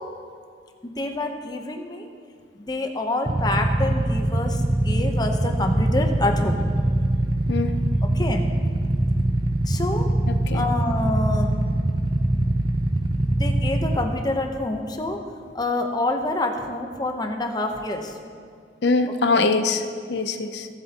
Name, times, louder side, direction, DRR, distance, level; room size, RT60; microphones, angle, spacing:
voice 1, 0.8-2.1 2.6-6.7 8.1-8.5 9.7-10.1 10.5-11.6 12.3-12.4 13.3-15.2 15.5-18.1 19.3-19.5, left 2 dB, 20° left, 3 dB, 0.8 m, -27 dB
Motorcycle / Idling, 3.3-14.0, right 1 dB, 25° right, 0.5 m, -23 dB
voice 2, 10.3-10.7 18.8-19.8 20.1-20.7, left 3 dB, 65° left, 8 dB, 0.6 m, -23 dB
18.0 x 7.9 x 2.9 m, 2.2 s
head